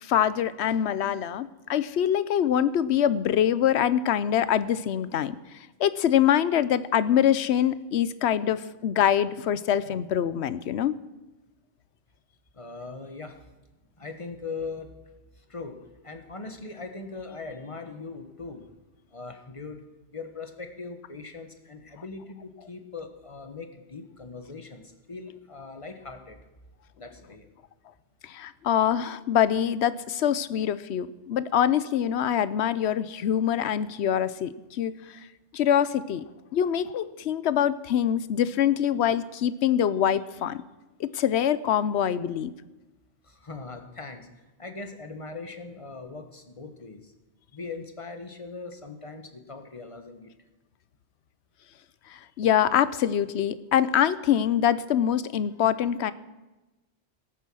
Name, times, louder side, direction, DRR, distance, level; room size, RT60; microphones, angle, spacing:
voice 1, 0.0-5.4 5.8-11.0 28.2-34.9 35.5-36.2 36.5-40.6 41.0-42.5 52.1-56.1, left 10 dB, 75° left, 16 dB, 0.9 m, -24 dB
voice 2, 12.5-13.4 14.0-14.9 15.3-18.7 19.1-19.8 20.1-26.4 27.0-27.5 43.2-44.3 44.6-47.1 47.5-50.3, left 4 dB, 30° left, 6 dB, 1.4 m, -40 dB
17.5 x 9.2 x 6.3 m, 1.1 s
omnidirectional pair, 1.1 m